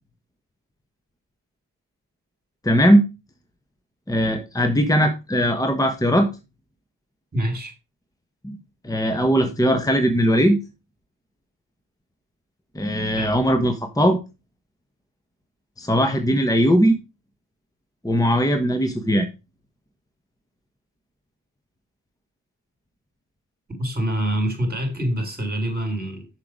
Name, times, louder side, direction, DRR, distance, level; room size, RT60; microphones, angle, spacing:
voice 1, 2.6-3.0 4.1-6.3 8.4-8.6 8.8-10.6 12.7-14.2 15.8-17.0 18.0-19.3, equal, 10° left, 1.4 m, -19 dB
voice 2, 7.3-7.7 13.2-13.3 23.8-26.3, right 1 dB, 20° right, 4.4 m, -25 dB
6.8 x 6.5 x 5.1 m
cardioid pair, 55°, 42 cm